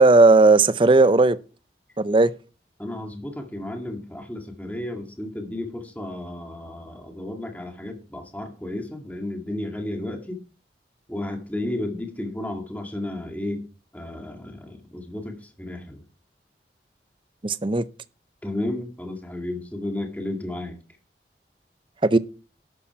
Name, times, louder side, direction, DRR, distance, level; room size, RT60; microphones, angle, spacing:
voice 1, 0.0-1.4 2.0-2.3 17.4-17.8 22.0-22.2, right 3 dB, 30° right, 0.5 m, -16 dB
voice 2, 2.8-10.4 11.1-13.6 13.9-16.0 18.4-20.8, left 1 dB, 10° left, 1.9 m, -33 dB
11.5 x 8.4 x 4.7 m
head